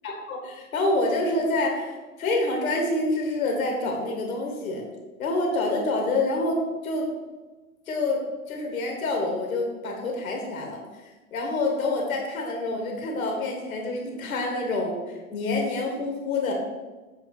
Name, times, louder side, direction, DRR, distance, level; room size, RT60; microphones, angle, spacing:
voice 1, 0.0-4.8 5.2-7.1 7.9-10.8 11.3-16.5, left 2 dB, 70° left, 1 dB, 2.0 m, -27 dB
8.1 x 4.2 x 5.6 m, 1.2 s
hypercardioid pair, 100°, 43 cm